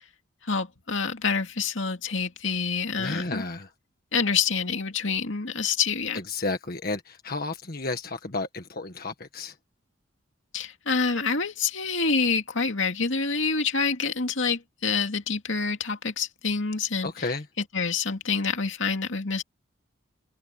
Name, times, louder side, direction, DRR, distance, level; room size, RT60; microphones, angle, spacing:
voice 1, 0.4-3.4 4.1-6.2 10.5-17.1 17.7-19.4, left 5 dB, 70° left, 2.4 m, -27 dB
voice 2, 3.0-3.7 6.1-9.6 17.0-17.5, left 3 dB, 50° left, 1.7 m, -32 dB
head